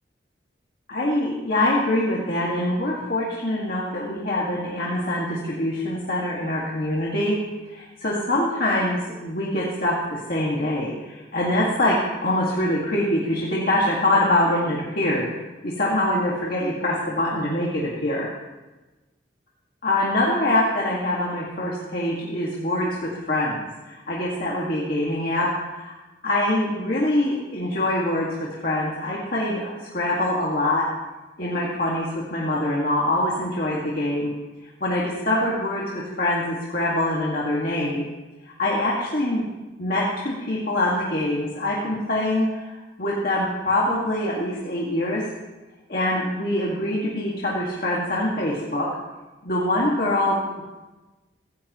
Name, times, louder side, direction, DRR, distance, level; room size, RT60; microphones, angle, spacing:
voice 1, 0.9-7.4 7.7-15.3 15.6-18.3 19.8-25.9 26.2-30.9 31.4-34.3 34.8-38.0 38.6-39.4 39.8-45.2 45.9-48.9 49.4-50.6, left 1 dB, 50° left, -5 dB, 2.0 m, -24 dB
16.5 x 15.5 x 3.1 m, 1.2 s
head